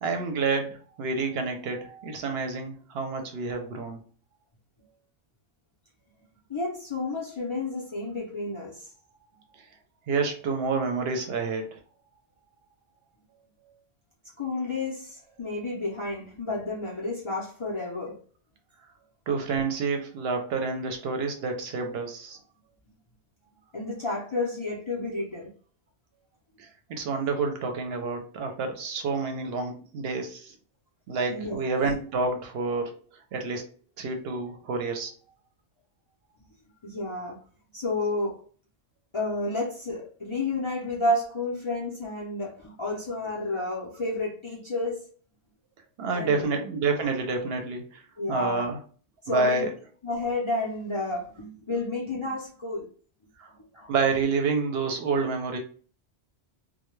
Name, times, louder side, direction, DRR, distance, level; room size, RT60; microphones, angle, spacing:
voice 1, 0.0-4.0 10.1-11.8 19.3-22.4 26.6-30.5 31.1-33.0 33.3-33.6 34.0-35.1 46.0-48.0 48.3-48.8 49.3-49.7 53.4-53.5 53.9-55.6, right 4 dB, 70° right, 4 dB, 0.8 m, -28 dB
voice 2, 6.5-8.9 14.4-18.2 23.7-25.5 31.3-31.6 36.8-37.4 37.7-38.4 39.1-45.1 46.1-46.5 48.2-48.6 49.2-49.7 50.0-52.9 53.8-53.9, left 2 dB, 40° left, -5 dB, 0.4 m, -31 dB
2.1 x 2.1 x 3.0 m, 0.42 s
omnidirectional pair, 1.1 m